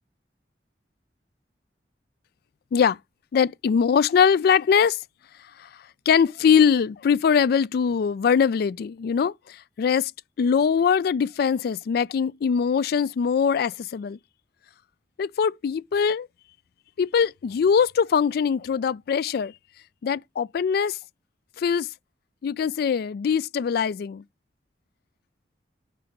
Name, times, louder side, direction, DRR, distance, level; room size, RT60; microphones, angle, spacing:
voice 1, 3.3-5.0 5.6-5.7 6.1-10.1 10.4-14.2 15.2-16.3 17.0-19.5 20.0-21.0 21.6-21.9 22.4-24.2, left 7 dB, 60° left, 0.3 m, -22 dB
4.9 x 4.3 x 5.1 m
head